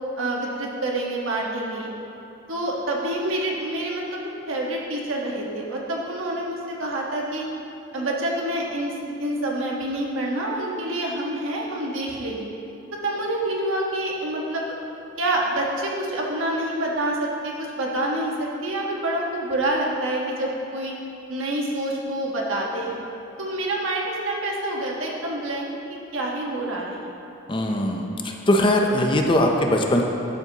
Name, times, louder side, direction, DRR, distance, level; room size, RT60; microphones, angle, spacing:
voice 1, 0.2-1.9 2.5-7.4 7.9-12.5 13.0-14.7 15.2-20.9 21.3-23.0 23.4-25.7 26.1-27.1, right 1 dB, 90° right, -2 dB, 1.4 m, -27 dB
voice 2, 27.5-30.0, left 1 dB, 25° left, 2 dB, 0.6 m, -21 dB
11.5 x 7.4 x 2.9 m, 2.8 s
head